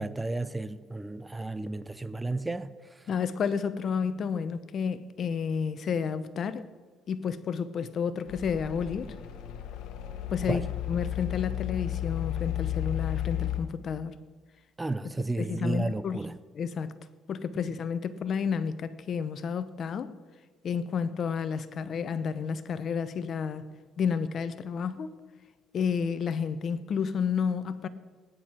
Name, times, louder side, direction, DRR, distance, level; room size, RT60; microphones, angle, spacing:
voice 1, 0.0-3.0 10.5-10.6 14.8-16.3, right 2 dB, 15° right, 0.6 m, -33 dB
voice 2, 3.1-6.7 7.1-9.1 10.3-14.1 15.4-16.2 16.5-16.9 17.3-20.1 20.6-23.7 24.0-25.1 25.7-27.9, left 6 dB, 55° left, 0.9 m, -31 dB
sound 1, 8.3-13.6, left 13 dB, 85° left, 1.3 m, -33 dB
19.0 x 10.5 x 4.5 m
cardioid pair, 95°, 0 cm